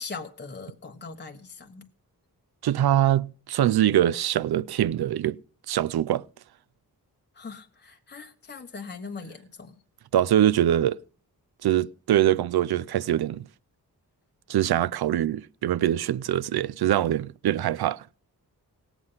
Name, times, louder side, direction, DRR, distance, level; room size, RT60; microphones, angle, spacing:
voice 1, 0.0-1.8 7.3-9.7, left 4 dB, 25° left, 1.2 m, -40 dB
voice 2, 2.6-5.4 5.7-6.3 10.1-11.0 11.6-13.5 14.5-18.1, right 11 dB, 75° right, 0.5 m, -23 dB
18.0 x 8.1 x 5.6 m
wide cardioid pair, 95°, 39 cm